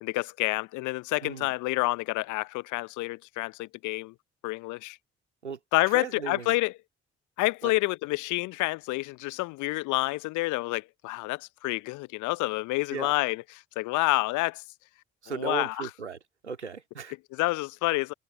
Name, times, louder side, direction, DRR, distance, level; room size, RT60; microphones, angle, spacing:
voice 1, 0.0-4.1 4.4-5.0 5.7-6.7 7.4-13.4 13.8-14.6 15.3-15.9 17.3-18.1, left 21 dB, 60° left, 0.8 m, -28 dB
voice 2, 1.2-1.5 5.4-5.6 5.9-6.5 7.6-7.7 12.9-13.1 15.2-16.2 16.4-17.1, right 5 dB, 85° right, 2.3 m, -36 dB
figure-of-eight pair, 40°, 33 cm